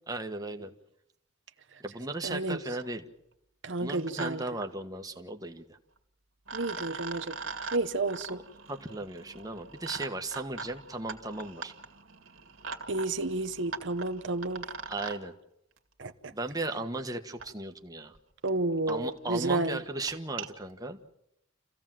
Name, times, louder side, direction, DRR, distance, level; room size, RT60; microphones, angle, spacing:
voice 1, 0.1-0.7 1.8-3.1 3.8-5.8 8.7-11.7 14.9-15.3 16.3-18.2 18.9-21.0, right 2 dB, 20° right, 1.4 m, -36 dB
sound 1, 2.1-2.2 2.5-2.9 3.8-4.3 4.6-4.7 6.0-6.1 6.5-15.2 16.5-16.6 17.4-17.5 18.2-18.3 18.5-18.6 18.9-19.0 19.3-19.5 19.9-20.5, right 4 dB, 85° right, 2.2 m, -42 dB
voice 2, 2.2-2.6 3.6-4.4 6.5-7.4 7.7-8.4 12.9-14.6 16.0-16.3 18.4-19.8, right 2 dB, 65° right, 1.0 m, -31 dB
28.5 x 16.0 x 7.6 m
head